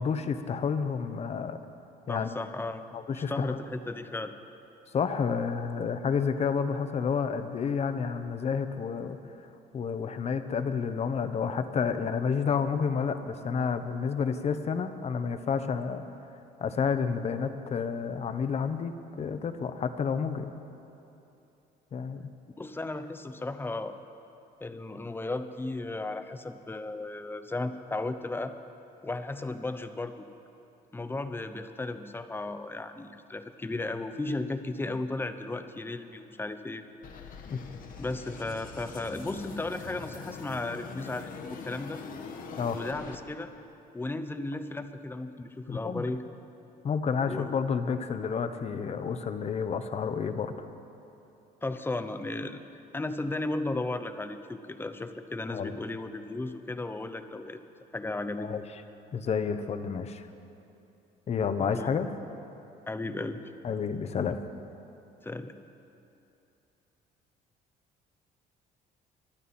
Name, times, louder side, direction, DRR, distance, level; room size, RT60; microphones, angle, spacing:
voice 1, 0.0-1.6 2.1-2.4 2.9-3.6 4.9-9.2 9.7-16.0 16.6-20.5 21.9-22.3 37.5-37.6 42.6-42.8 45.7-46.0 46.8-50.5 55.5-55.8 58.4-58.6 59.1-60.3 61.3-62.1 63.6-64.4, left 6 dB, 40° left, 9 dB, 0.9 m, -30 dB
voice 2, 2.1-2.8 3.1-4.3 22.6-24.0 24.6-28.5 29.0-30.3 30.9-36.8 38.0-42.0 42.7-43.5 43.9-46.2 47.3-47.6 51.6-52.6 52.9-57.6 57.9-58.5 61.6-62.0 62.9-63.4 65.2-65.6, left 2 dB, 15° left, 9 dB, 0.8 m, -35 dB
sound 1, 37.0-43.2, left 5 dB, 55° left, 1.3 m, -43 dB
23.0 x 12.0 x 4.3 m, 2.8 s
cardioid pair, 110°, 17 cm